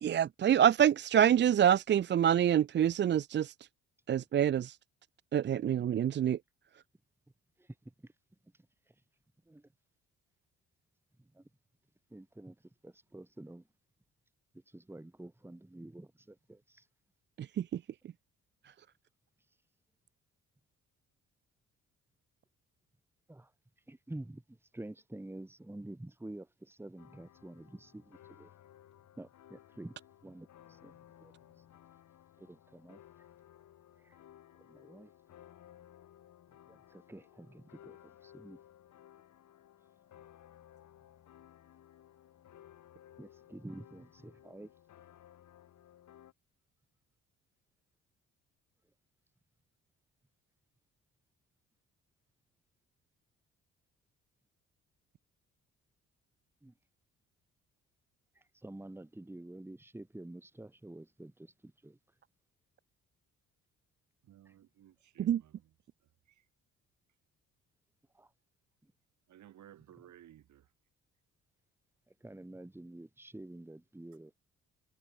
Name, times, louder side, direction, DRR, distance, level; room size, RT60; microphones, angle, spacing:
voice 1, 0.0-3.5 4.1-4.8 5.3-6.4 17.4-17.8 65.2-65.4, right 9 dB, 40° right, 0.4 m, -26 dB
voice 2, 12.1-12.6 12.8-13.6 14.7-16.8 23.3-23.5 23.9-28.5 29.2-30.0 30.2-31.3 32.4-33.0 34.0-34.2 34.6-35.1 36.7-38.6 43.2-44.7 56.6-56.7 58.4-62.0 68.1-68.3 72.1-74.3, right 1 dB, 10° right, 1.8 m, -49 dB
sound 1, 27.0-46.3, left 11 dB, 70° left, 6.5 m, -58 dB
voice 3, 64.2-65.7 66.0-66.5 69.3-70.7, right 11 dB, 70° right, 4.4 m, -58 dB
cardioid pair, 90°, 30 cm